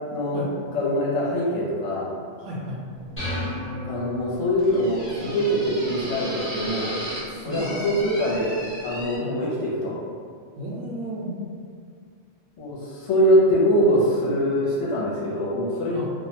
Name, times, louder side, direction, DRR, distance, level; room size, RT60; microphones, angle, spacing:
voice 1, 0.1-0.4 0.7-2.1 3.8-7.0 7.4-8.5 8.8-9.9 12.6-16.0, equal, 70° left, -6 dB, 0.9 m, -23 dB
voice 2, 2.4-2.8 7.2-7.7 9.2-9.3 10.6-11.3 15.9-16.1, equal, 75° right, -4 dB, 0.9 m, -34 dB
sound 1, 2.9-9.2, equal, 30° right, 0.5 m, -36 dB
sound 2, 3.2-4.8, left 1 dB, 15° left, 0.6 m, -32 dB
2.4 x 2.1 x 2.7 m, 2.1 s
omnidirectional pair, 1.3 m